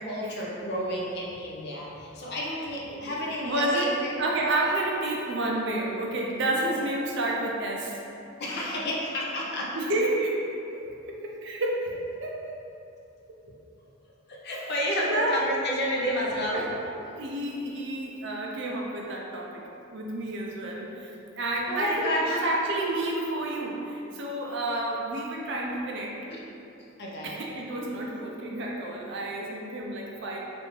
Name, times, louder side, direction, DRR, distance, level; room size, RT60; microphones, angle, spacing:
voice 1, 0.0-4.2 8.4-9.7 14.3-16.7 21.7-22.4 26.3-26.4 26.8-27.5, equal, 55° left, -4 dB, 0.5 m, -30 dB
voice 2, 2.9-8.0 9.7-10.4 10.7-10.8 11.1-12.4 14.5-14.7 15.0-15.4 16.5-16.7 17.1-19.6 19.9-26.2 27.2-30.4, right 1 dB, 60° right, -2 dB, 0.5 m, -30 dB
3.3 x 2.6 x 3.1 m, 2.8 s
head